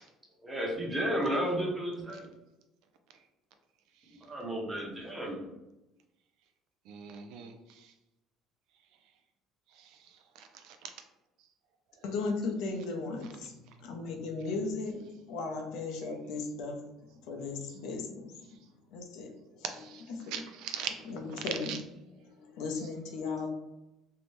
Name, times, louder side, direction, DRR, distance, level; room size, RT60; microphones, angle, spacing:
voice 1, 0.4-2.3 4.1-5.5, equal, 10° right, -3 dB, 0.8 m, -33 dB
voice 2, 6.9-7.5 10.4-10.9 19.7-20.0 20.3-20.9 21.7-21.8, right 9 dB, 75° right, 6 dB, 0.3 m, -40 dB
voice 3, 12.0-16.8 17.2-18.3 18.9-19.6 20.1-20.4 21.1-21.8 22.2-23.5, left 3 dB, 75° left, 2 dB, 0.5 m, -36 dB
2.7 x 2.1 x 3.0 m, 0.94 s
cardioid pair, 135°, 0 cm